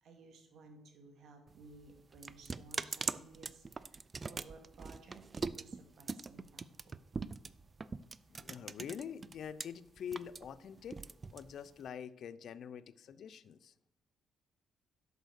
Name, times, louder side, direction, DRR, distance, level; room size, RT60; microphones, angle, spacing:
voice 1, 0.0-7.0, right 3 dB, 65° right, 4 dB, 2.3 m, -57 dB
sound 1, 1.5-9.6 10.0-11.9, right 4 dB, 30° right, 0.4 m, -42 dB
voice 2, 8.3-11.0 11.3-13.7, left 8 dB, 65° left, 16 dB, 0.6 m, -45 dB
11.0 x 6.7 x 6.5 m, 0.82 s
cardioid pair, 90°, 0 cm